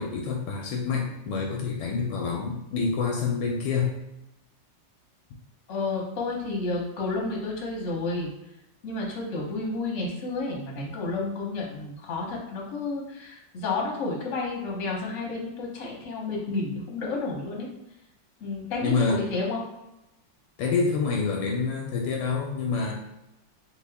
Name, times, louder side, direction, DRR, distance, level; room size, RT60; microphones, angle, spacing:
voice 1, 0.0-4.0 18.8-19.2 20.6-22.9, left 4 dB, 75° left, 0 dB, 1.2 m, -27 dB
voice 2, 5.7-8.3 8.8-17.7 18.4-19.6, left 3 dB, 50° left, -2 dB, 1.1 m, -31 dB
3.2 x 2.9 x 3.4 m, 0.91 s
omnidirectional pair, 2.0 m